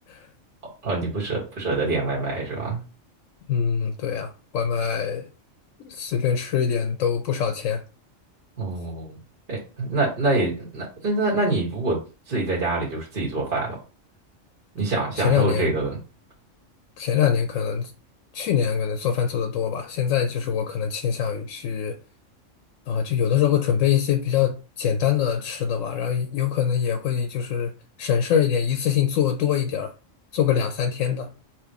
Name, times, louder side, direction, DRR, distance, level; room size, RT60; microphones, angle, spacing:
voice 1, 0.8-2.8 8.6-9.1 9.5-12.0 12.3-13.8 14.8-16.0, right 2 dB, 45° right, 1.7 m, -25 dB
voice 2, 3.5-5.3 5.8-7.8 15.2-15.7 17.0-17.9 18.3-22.0 22.9-27.7 28.0-29.9 30.3-31.3, left 8 dB, 80° left, 1.0 m, -24 dB
3.7 x 3.0 x 4.6 m
omnidirectional pair, 1.3 m